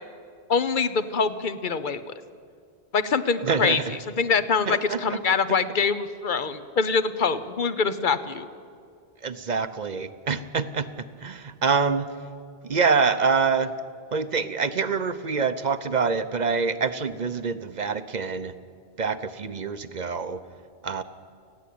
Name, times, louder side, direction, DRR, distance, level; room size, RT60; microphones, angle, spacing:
voice 1, 0.5-2.1 2.9-3.8 4.2-8.5, left 5 dB, 55° left, 12 dB, 1.0 m, -24 dB
voice 2, 3.4-4.0 4.7-5.4 9.2-10.9 11.2-12.1 12.6-13.7 14.1-18.5 19.0-20.4 20.8-21.0, right 5 dB, 45° right, 12 dB, 0.8 m, -26 dB
29.5 x 10.5 x 8.6 m, 2.3 s
omnidirectional pair, 1.1 m